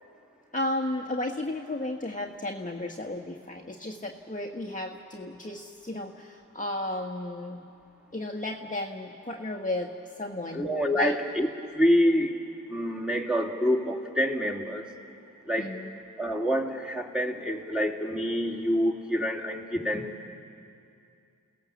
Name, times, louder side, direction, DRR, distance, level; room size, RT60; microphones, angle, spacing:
voice 1, 0.5-7.7 8.1-11.2 15.6-16.0, left 1 dB, 25° left, 0 dB, 1.6 m, -34 dB
voice 2, 10.5-12.4 12.7-14.8 15.5-15.7 16.2-20.3, equal, 5° right, 0 dB, 3.0 m, -27 dB
29.5 x 17.5 x 7.3 m, 2.6 s
cardioid pair, 50°, 34 cm